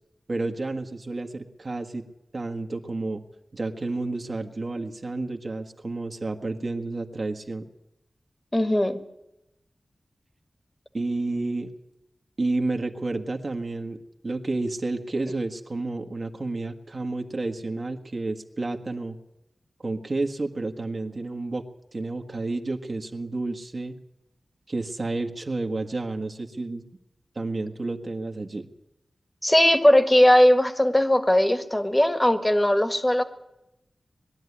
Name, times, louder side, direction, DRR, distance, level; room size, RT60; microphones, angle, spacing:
voice 1, 0.3-2.1 2.3-3.2 3.5-7.7 10.9-11.7 12.4-14.0 14.2-19.2 19.8-21.6 21.9-24.0 24.7-26.8 27.3-28.7, right 2 dB, 50° right, 4 dB, 1.6 m, -30 dB
voice 2, 8.5-9.0 29.4-33.2, left 1 dB, 15° left, 8 dB, 1.7 m, -19 dB
21.0 x 12.5 x 9.8 m, 0.91 s
wide cardioid pair, 75°, 0 cm